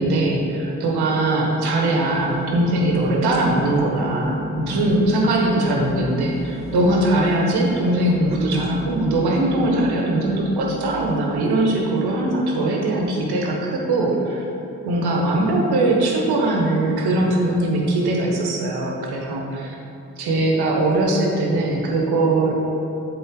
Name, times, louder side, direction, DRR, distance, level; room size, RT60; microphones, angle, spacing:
voice 1, 0.0-14.4 14.8-19.7 20.2-22.5, right 2 dB, 65° right, -1 dB, 1.3 m, -21 dB
sound 1, 1.9-11.1, equal, 15° right, 1.1 m, -33 dB
8.2 x 4.2 x 3.8 m, 3.0 s
hypercardioid pair, 40°, 41 cm